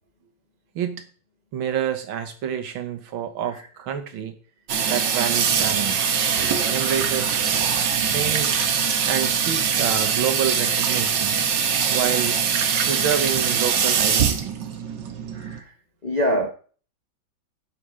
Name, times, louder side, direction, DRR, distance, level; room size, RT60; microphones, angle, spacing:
voice 1, 1.5-4.3 4.9-6.1 6.7-7.4 8.0-8.6 9.1-11.4 11.9-12.4 12.9-14.6, right 9 dB, 85° right, 2.0 m, -28 dB
Water tap faucet / Sink (filling or washing), 4.7-15.6, right 7 dB, 65° right, 1.7 m, -22 dB
voice 2, 15.3-15.7 16.0-16.5, equal, 35° left, 0.6 m, -24 dB
8.0 x 7.0 x 5.0 m
omnidirectional pair, 2.1 m